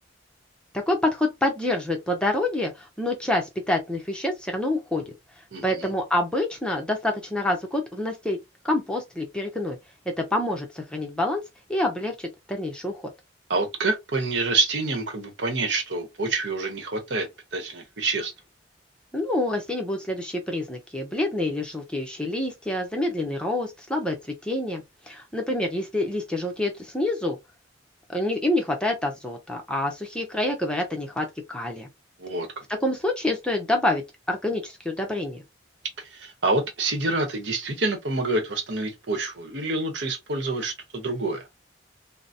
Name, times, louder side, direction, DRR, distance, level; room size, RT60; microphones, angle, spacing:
voice 1, 0.7-5.1 5.6-8.4 8.6-9.8 10.2-11.4 11.7-13.1 19.1-24.2 24.4-27.4 28.1-31.9 32.8-35.4, left 1 dB, 5° left, 0.6 m, -27 dB
voice 2, 5.5-5.9 13.5-17.3 17.5-18.3 32.2-32.6 36.0-41.4, right 2 dB, 65° right, 1.0 m, -27 dB
3.8 x 2.0 x 2.6 m
head